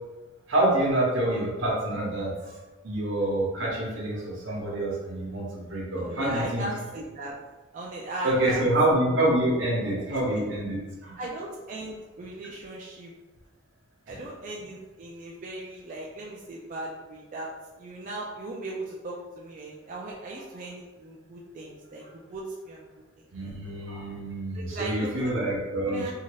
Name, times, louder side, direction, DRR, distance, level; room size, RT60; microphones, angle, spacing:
voice 1, 0.5-2.5 2.8-6.7 8.2-11.2 23.3-26.1, right 1 dB, 75° right, -3 dB, 0.8 m, -27 dB
voice 2, 5.9-7.4 7.7-8.7 9.7-10.0 10.3-10.4 11.2-13.1 14.1-17.5 17.8-22.9 23.2-23.3 24.5-25.4 25.9-26.1, right 2 dB, 40° right, -3 dB, 0.3 m, -38 dB
2.7 x 2.3 x 3.0 m, 1.2 s
head